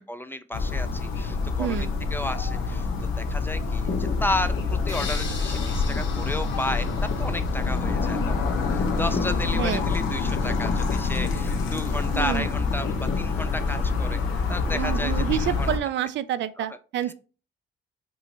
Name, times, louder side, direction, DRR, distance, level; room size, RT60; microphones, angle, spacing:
voice 1, 0.1-2.9 3.2-14.2 14.5-15.7 16.6-16.7 17.1-17.2, left 1 dB, 10° left, 0.4 m, -33 dB
sound 1, 0.5-15.8, left 4 dB, 90° left, 0.9 m, -26 dB
voice 2, 1.6-1.9 9.6-9.9 12.1-12.5 14.7-17.1, right 11 dB, 70° right, 0.4 m, -28 dB
sound 2, 3.9-15.2, left 4 dB, 50° left, 1.0 m, -37 dB
sound 3, 4.9-7.9, left 5 dB, 70° left, 2.2 m, -39 dB
5.4 x 2.9 x 3.2 m
cardioid pair, 90°, 20 cm